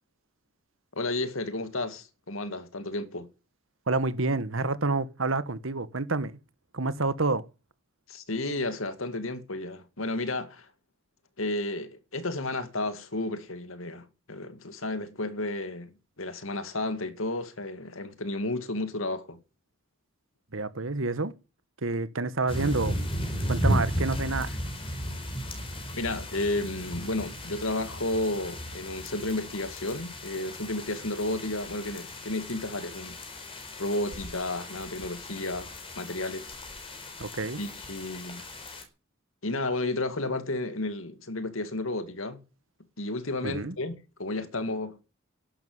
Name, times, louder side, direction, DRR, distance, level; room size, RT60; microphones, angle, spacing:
voice 1, 0.9-3.3 8.1-10.7 11.4-19.4 25.9-33.2 33.8-36.6 37.6-38.5 39.4-42.4 43.0-45.0, left 2 dB, 80° left, 2.3 m, -32 dB
voice 2, 3.9-6.3 6.7-7.4 20.5-21.3 21.8-22.9 23.5-24.6 37.2-37.6 43.4-43.7, right 3 dB, 75° right, 1.5 m, -28 dB
sound 1, 22.5-38.8, equal, 25° left, 4.6 m, -35 dB
12.0 x 11.5 x 9.8 m
head